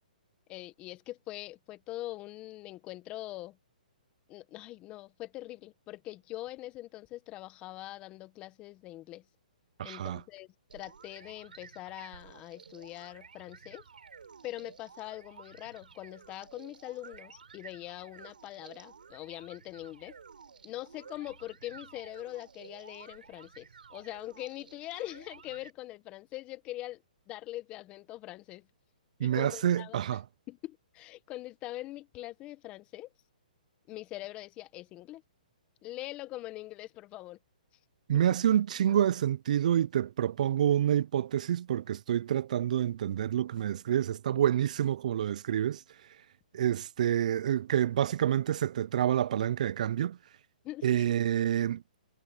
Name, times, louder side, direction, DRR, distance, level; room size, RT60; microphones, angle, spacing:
voice 1, 0.5-3.6 4.3-9.2 9.8-10.5 10.7-13.8 14.4-20.1 20.6-27.0 27.3-28.7 29.2-30.0 30.5-33.1 33.9-35.2 35.8-37.4 50.6-51.1, left 16 dB, 25° left, 1.2 m, -43 dB
voice 2, 9.8-10.2 29.2-30.2 38.1-45.8 46.5-50.2 50.8-51.8, right 10 dB, 60° right, 0.5 m, -28 dB
sound 1, 10.7-25.7, right 6 dB, 90° right, 6.8 m, -53 dB
hypercardioid pair, 155°, 5 cm